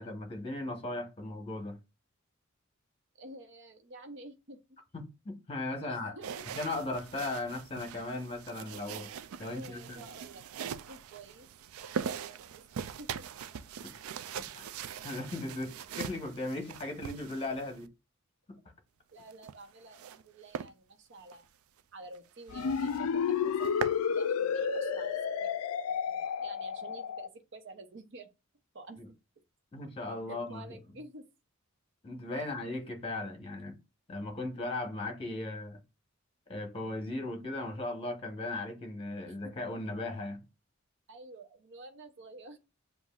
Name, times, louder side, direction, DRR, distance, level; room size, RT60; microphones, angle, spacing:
voice 1, 0.0-1.8 4.9-6.2 6.6-9.1 9.4-10.1 13.8-13.9 14.5-14.7 15.0-17.9 18.5-18.6 29.0-29.1 29.7-30.8 32.0-33.7 34.1-35.8 36.5-40.5, left 2 dB, 25° left, 1.0 m, -37 dB
voice 2, 3.2-4.6 5.7-6.5 9.5-11.5 11.8-13.2 19.1-21.5 21.9-25.6 25.9-28.3 28.7-29.2 30.3-31.2 32.7-32.8 39.3-39.6 41.1-42.6, right 2 dB, 60° right, 0.7 m, -50 dB
sound 1, 6.2-17.9 19.2-20.2 20.5-20.7 21.2-21.4 21.8-21.9 22.1-22.2 22.6-23.0 23.4-24.0, right 7 dB, 85° right, 0.3 m, -41 dB
sound 2, 22.5-27.3, left 7 dB, 90° left, 0.4 m, -31 dB
7.2 x 2.6 x 2.4 m
head